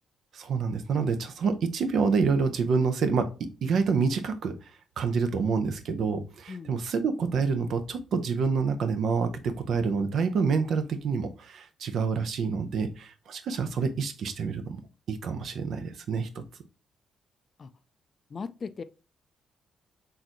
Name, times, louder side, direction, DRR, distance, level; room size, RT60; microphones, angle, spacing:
voice 1, 0.3-4.5 5.0-14.8 15.1-16.4, right 5 dB, 70° right, 0.6 m, -27 dB
voice 2, 18.3-18.8, left 5 dB, 45° left, 0.3 m, -37 dB
3.8 x 2.6 x 2.9 m
cardioid pair, 75°, 0 cm